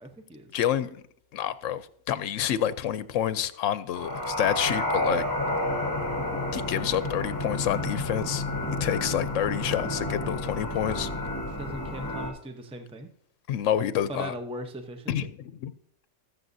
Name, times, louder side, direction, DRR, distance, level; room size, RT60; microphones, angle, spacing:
voice 1, 0.0-0.5 11.6-13.1 14.1-15.3, right 1 dB, 5° right, 0.7 m, -39 dB
voice 2, 0.5-1.0 1.3-5.3 6.5-11.1 13.5-14.3 15.1-15.7, left 10 dB, 80° left, 1.0 m, -28 dB
sound 1, 3.9-12.3, left 1 dB, 15° left, 2.2 m, -30 dB
20.0 x 6.9 x 2.7 m
omnidirectional pair, 1.3 m